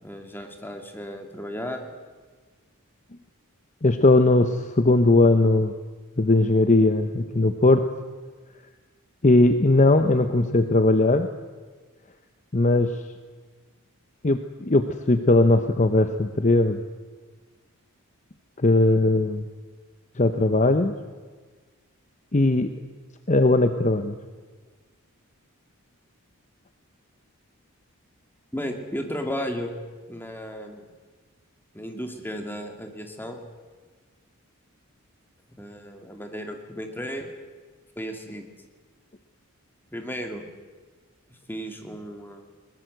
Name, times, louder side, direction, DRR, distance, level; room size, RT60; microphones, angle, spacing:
voice 1, 0.0-1.8 28.5-29.7 30.1-30.9 31.7-33.4 35.6-37.3 38.0-38.5 39.9-40.4 41.5-42.5, equal, 10° left, 4 dB, 2.5 m, -34 dB
voice 2, 3.8-5.7 6.2-7.9 9.2-11.3 12.5-13.0 14.2-16.8 18.6-19.4 20.2-20.9 22.3-22.7 23.3-24.2, left 2 dB, 35° left, 8 dB, 0.8 m, -19 dB
21.0 x 20.5 x 7.9 m, 1.4 s
head